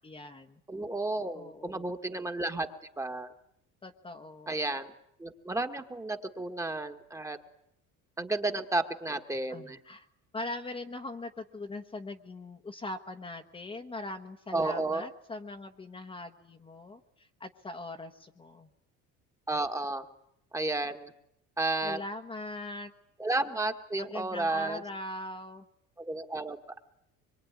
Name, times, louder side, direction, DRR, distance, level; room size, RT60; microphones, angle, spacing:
voice 1, 0.0-0.6 1.3-1.9 3.8-4.5 9.5-10.1 10.3-18.7 21.8-22.9 24.0-25.6, left 2 dB, 15° left, 5 dB, 1.3 m, -41 dB
voice 2, 0.7-2.7 3.0-3.3 4.5-4.9 5.2-7.4 8.2-9.8 14.5-15.1 19.5-20.1 20.5-21.1 21.6-22.0 23.2-24.8 26.0-26.8, right 2 dB, 10° right, 6 dB, 1.7 m, -32 dB
25.5 x 23.5 x 9.6 m, 0.75 s
cardioid pair, 150°, 32 cm